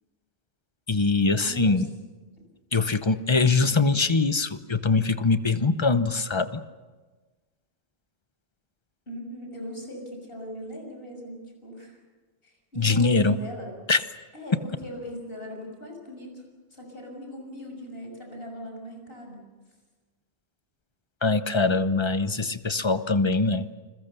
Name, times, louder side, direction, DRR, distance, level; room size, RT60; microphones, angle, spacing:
voice 1, 0.9-1.9 2.7-6.6 12.8-13.4 13.9-14.0 21.2-23.7, left 3 dB, 25° left, 12 dB, 0.8 m, -23 dB
voice 2, 1.5-1.8 9.1-12.0 12.4-13.7 14.3-16.4 16.7-19.5, equal, 50° left, 2 dB, 6.8 m, -39 dB
29.5 x 22.0 x 6.9 m, 1.3 s
omnidirectional pair, 1.2 m